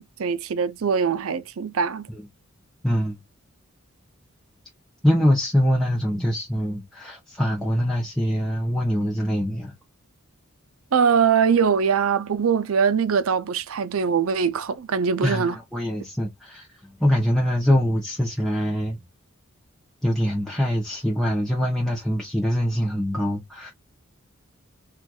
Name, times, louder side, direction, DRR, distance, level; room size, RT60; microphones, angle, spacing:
voice 1, 0.0-2.1 10.9-15.6, right 6 dB, 80° right, 0.5 m, -22 dB
voice 2, 2.8-3.2 5.0-9.7 15.2-19.0 20.0-23.7, equal, ahead, 0.7 m, -24 dB
4.4 x 2.4 x 2.3 m
head